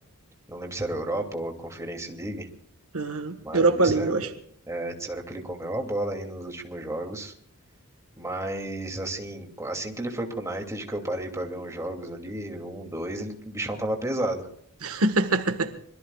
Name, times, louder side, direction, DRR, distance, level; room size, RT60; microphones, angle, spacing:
voice 1, 0.5-2.5 3.4-4.3 4.7-7.3 8.2-14.5, right 1 dB, 15° right, 2.7 m, -32 dB
voice 2, 2.9-4.3 14.8-15.7, right 3 dB, 70° right, 1.5 m, -23 dB
26.0 x 22.0 x 2.4 m
head